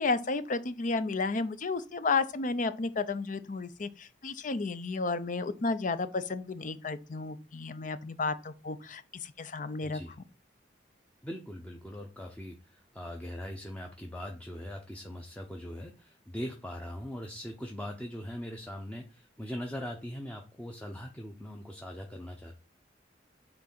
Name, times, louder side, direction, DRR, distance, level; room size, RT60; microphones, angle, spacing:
voice 1, 0.0-10.0, left 3 dB, 50° left, 0.6 m, -32 dB
voice 2, 9.8-10.1 11.2-22.6, equal, 10° left, 0.7 m, -41 dB
5.9 x 3.8 x 6.0 m
head